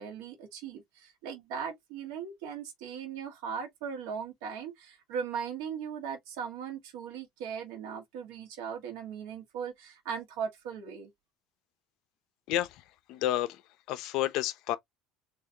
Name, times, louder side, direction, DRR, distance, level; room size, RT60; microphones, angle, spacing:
voice 1, 0.0-11.1, right 7 dB, 75° right, 1.5 m, -38 dB
voice 2, 12.5-13.6 13.9-14.8, left 13 dB, 55° left, 0.6 m, -31 dB
4.1 x 2.9 x 2.7 m
cardioid pair, 155°, 0 cm